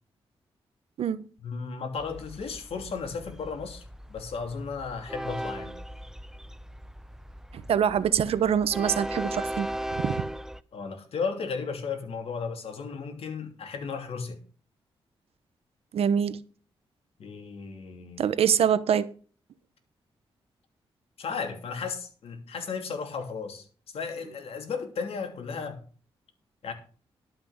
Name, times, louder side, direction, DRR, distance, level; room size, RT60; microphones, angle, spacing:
voice 1, 1.4-5.8 10.7-14.4 17.2-18.3 21.2-25.8 26.6-26.7, left 5 dB, 75° left, 2.9 m, -35 dB
Train, 2.0-10.6, right 1 dB, 5° right, 0.6 m, -37 dB
voice 2, 7.5-9.7 10.0-10.2 15.9-16.4 18.2-19.1, right 8 dB, 75° right, 0.9 m, -24 dB
12.0 x 6.0 x 7.1 m
cardioid pair, 80°, 10 cm